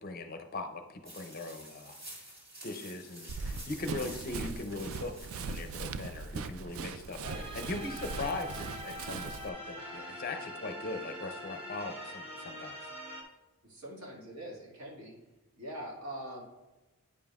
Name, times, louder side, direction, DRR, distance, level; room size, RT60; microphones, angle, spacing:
voice 1, 0.0-2.0 2.6-7.2 7.5-12.9, left 3 dB, 40° left, 6 dB, 0.5 m, -40 dB
sound 1, 1.0-5.8, right 1 dB, 45° right, 2.1 m, -49 dB
Run, 3.3-9.5, right 4 dB, 70° right, 0.3 m, -40 dB
sound 2, 7.2-13.2, equal, 25° right, 1.0 m, -43 dB
voice 2, 7.2-7.5 13.6-15.2 15.6-16.4, equal, 85° right, -4 dB, 2.0 m, -43 dB
9.2 x 5.3 x 2.4 m, 1.1 s
head